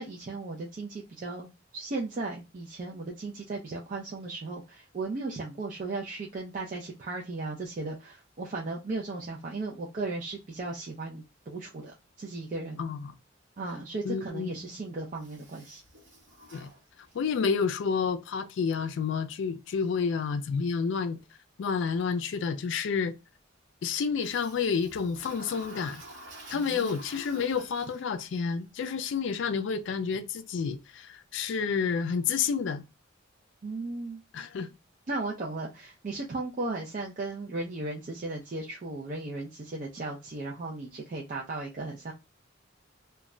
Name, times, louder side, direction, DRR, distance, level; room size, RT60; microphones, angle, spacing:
voice 1, 0.0-12.8 13.6-15.8 26.5-26.9 33.6-34.2 35.1-42.1, right 3 dB, 40° right, 0.4 m, -36 dB
voice 2, 12.8-13.1 14.0-14.5 16.5-16.7 17.1-21.2 21.6-23.1 23.8-26.0 26.5-32.8 34.3-34.7, left 6 dB, 65° left, 0.3 m, -29 dB
Toilet flush, 15.2-17.4 24.2-28.3, right 1 dB, 65° right, 1.0 m, -49 dB
2.2 x 2.1 x 3.6 m
head